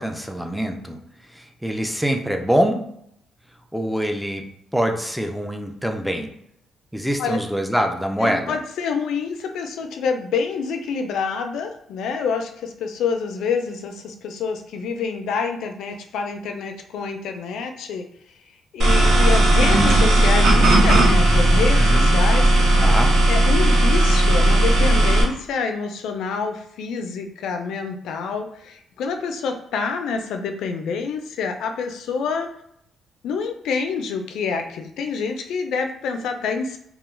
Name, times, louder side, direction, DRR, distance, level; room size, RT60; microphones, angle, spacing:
voice 1, 0.0-2.9 3.7-6.3 6.9-8.6 21.7-22.1 22.8-23.2, equal, ahead, 4 dB, 0.4 m, -24 dB
voice 2, 8.2-18.0 18.7-22.4 23.3-32.5 33.2-36.8, left 5 dB, 80° left, 5 dB, 0.3 m, -27 dB
sound 1, 18.8-25.2, right 1 dB, 75° right, 0.7 m, -16 dB
2.2 x 2.2 x 3.1 m, 0.73 s
cardioid pair, 90°, 0 cm